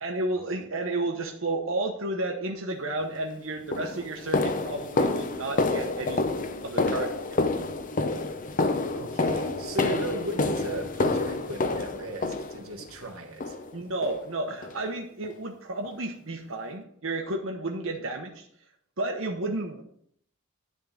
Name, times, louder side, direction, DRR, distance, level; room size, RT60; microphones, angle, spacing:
voice 1, 0.0-6.3 6.6-7.1 9.8-10.0 13.7-18.5 19.0-19.8, right 2 dB, 65° right, 1.0 m, -32 dB
sound 1, 3.0-3.2 3.7-12.9 13.4-13.8 14.0-14.2 14.6-14.8 15.2-15.3 15.8-15.9, left 3 dB, 40° left, 0.7 m, -28 dB
voice 2, 8.9-13.6, right 2 dB, 85° right, 1.3 m, -36 dB
10.5 x 3.7 x 7.1 m
head